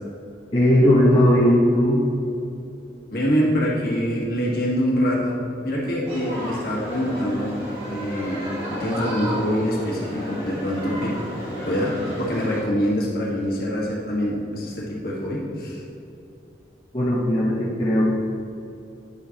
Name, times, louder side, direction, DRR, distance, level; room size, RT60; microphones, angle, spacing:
voice 1, 0.5-2.1 16.9-18.1, equal, 30° left, -7 dB, 1.0 m, -18 dB
voice 2, 3.1-5.4 5.6-11.1 11.5-15.8, equal, 55° left, -4 dB, 1.6 m, -25 dB
sound 1, 6.1-12.6, equal, 30° right, 1.9 m, -32 dB
9.7 x 7.0 x 2.9 m, 2.7 s
head